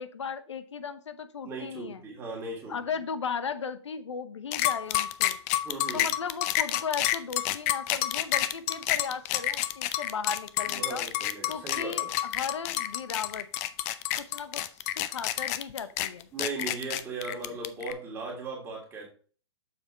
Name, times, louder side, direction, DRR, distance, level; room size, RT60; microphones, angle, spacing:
voice 1, 0.0-2.0 2.7-5.4 5.9-11.0 11.5-13.5 14.2-16.3, left 6 dB, 85° left, 12 dB, 0.9 m, -36 dB
voice 2, 1.4-2.8 5.6-6.1 10.7-12.1 16.3-19.1, right 3 dB, 15° right, -2 dB, 3.1 m, -37 dB
sound 1, 4.5-17.9, left 14 dB, 35° left, 0.5 m, -29 dB
7.1 x 5.2 x 4.3 m, 0.41 s
hypercardioid pair, 140°, 15 cm